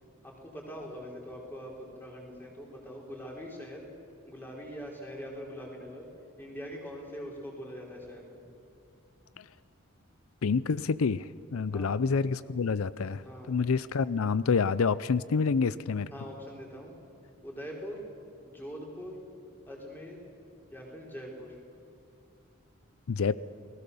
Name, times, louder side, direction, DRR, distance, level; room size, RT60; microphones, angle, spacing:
voice 1, 0.2-3.8 4.2-6.1 6.4-8.3 11.7-12.1 13.2-13.6 16.1-17.0 17.4-18.0 18.4-19.2 19.7-20.2 20.7-21.6, equal, 10° left, -1 dB, 4.4 m, -43 dB
voice 2, 10.4-16.1 23.1-23.4, left 5 dB, 85° left, 17 dB, 0.5 m, -28 dB
29.0 x 19.5 x 7.0 m, 2.5 s
head